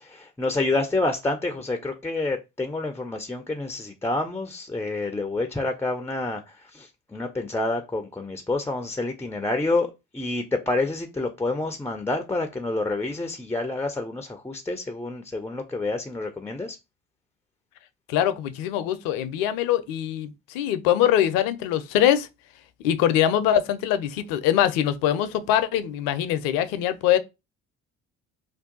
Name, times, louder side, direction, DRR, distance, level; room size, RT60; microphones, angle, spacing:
voice 1, 0.0-9.9 10.1-16.8, left 2 dB, 5° left, 0.3 m, -28 dB
voice 2, 18.1-22.3 22.8-27.2, left 11 dB, 65° left, 0.5 m, -23 dB
2.6 x 2.2 x 3.7 m
hypercardioid pair, 50°, 38 cm